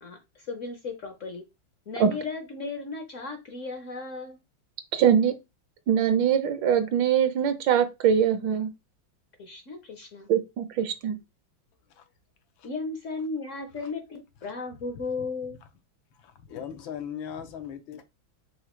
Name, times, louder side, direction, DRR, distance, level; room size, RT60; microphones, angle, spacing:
voice 1, 0.0-1.4 1.9-4.4 9.4-10.3 12.6-15.6, left 3 dB, 55° left, 0.9 m, -35 dB
voice 2, 4.9-5.3 5.9-8.7 10.3-11.2, right 8 dB, 75° right, 1.4 m, -22 dB
voice 3, 16.5-18.0, left 8 dB, 85° left, 1.6 m, -37 dB
4.9 x 2.3 x 4.4 m
omnidirectional pair, 2.1 m